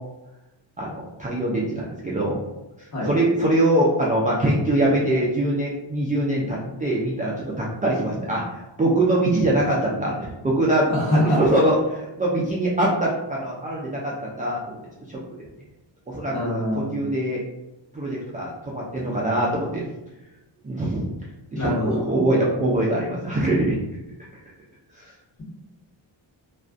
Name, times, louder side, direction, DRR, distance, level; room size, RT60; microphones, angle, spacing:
voice 1, 0.8-2.4 2.8-14.8 15.1-15.2 16.1-17.4 17.9-19.8 20.6-21.1 21.5-23.8 24.9-25.1, right 1 dB, 20° right, -5 dB, 0.3 m, -23 dB
voice 2, 10.9-11.4 16.3-17.1 21.5-22.0, left 1 dB, 35° left, -7 dB, 1.3 m, -24 dB
2.4 x 2.3 x 2.4 m, 1.0 s
cardioid pair, 95°, 47 cm